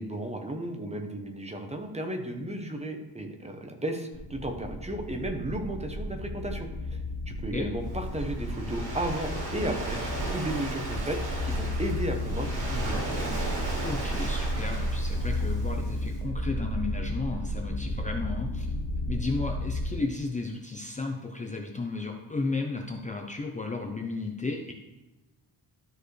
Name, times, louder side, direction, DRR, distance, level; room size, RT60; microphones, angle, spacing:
voice 1, 0.0-7.0 7.3-10.0 10.3-13.1, right 1 dB, 15° right, 4 dB, 0.8 m, -34 dB
sound 1, 4.1-19.9, left 1 dB, 70° left, 1.4 m, -32 dB
Waves surf, 7.8-16.1, right 1 dB, 85° right, 3.0 m, -37 dB
voice 2, 13.8-18.7 19.1-24.7, left 3 dB, 20° left, 1 dB, 0.6 m, -33 dB
12.5 x 4.5 x 3.3 m, 1.0 s
wide cardioid pair, 150°, 40 cm